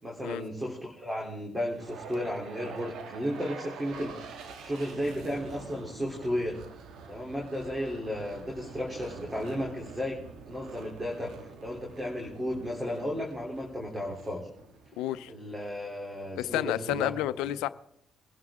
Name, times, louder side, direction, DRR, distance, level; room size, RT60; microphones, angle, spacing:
voice 1, 0.0-4.2 4.6-6.6 7.1-10.2 10.4-14.4 15.3-17.1 17.4-17.5, equal, 15° right, 0 dB, 3.2 m, -34 dB
sound 1, 1.7-15.9, right 5 dB, 75° right, 1.8 m, -46 dB
voice 2, 15.0-15.3 16.4-17.7, left 13 dB, 90° left, 14 dB, 0.6 m, -30 dB
23.0 x 11.5 x 3.6 m, 0.73 s
supercardioid pair, 70°, 0 cm